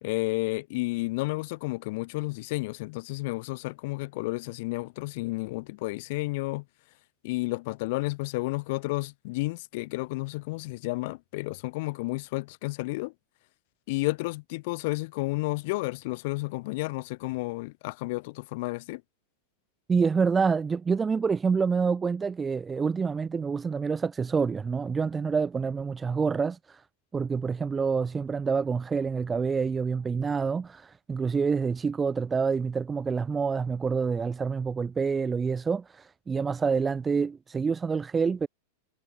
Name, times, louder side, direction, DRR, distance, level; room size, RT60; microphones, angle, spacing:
voice 1, 0.0-6.6 7.2-13.1 13.9-19.0, left 23 dB, 50° left, 2.5 m, -31 dB
voice 2, 19.9-26.8 27.1-38.5, right 5 dB, 15° right, 5.6 m, -27 dB
figure-of-eight pair, 90°, 0 cm